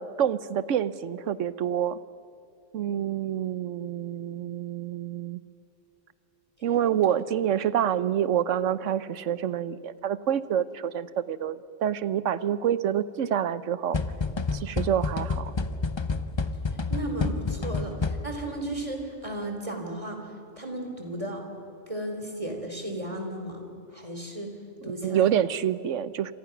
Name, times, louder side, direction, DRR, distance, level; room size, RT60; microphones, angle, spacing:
voice 1, 0.0-2.0 2.7-5.4 6.6-14.0 14.5-15.5 25.0-26.3, right 9 dB, 90° right, 15 dB, 1.1 m, -27 dB
sound 1, 13.9-18.5, left 4 dB, 25° left, 0.7 m, -29 dB
voice 2, 16.9-20.3 20.6-21.4 21.9-23.7 23.9-24.5 24.8-25.3, right 1 dB, 25° right, 3 dB, 3.4 m, -34 dB
28.0 x 26.0 x 6.0 m, 2.6 s
omnidirectional pair, 1.2 m